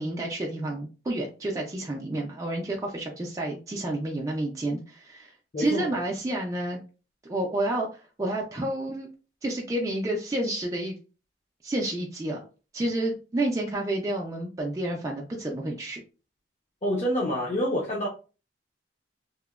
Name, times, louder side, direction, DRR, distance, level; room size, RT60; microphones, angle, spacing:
voice 1, 0.0-6.8 7.3-9.1 9.4-11.0 11.6-12.4 12.7-16.0, right 1 dB, 20° right, 0.3 m, -30 dB
voice 2, 5.5-5.8 16.8-18.1, equal, 40° left, 0.5 m, -27 dB
2.8 x 2.0 x 2.3 m
head